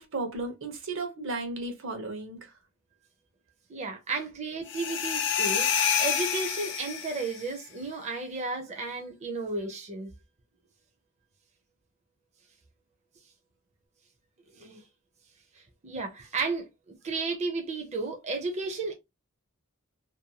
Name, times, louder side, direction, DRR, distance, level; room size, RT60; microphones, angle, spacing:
voice 1, 0.0-2.5, right 3 dB, 60° right, 0.8 m, -34 dB
voice 2, 3.7-5.7 6.0-10.1 14.6-14.8 15.8-16.7 17.0-18.9, right 3 dB, 30° right, 0.5 m, -33 dB
sound 1, 4.7-7.4, left 8 dB, 60° left, 0.5 m, -28 dB
2.6 x 2.2 x 2.8 m
head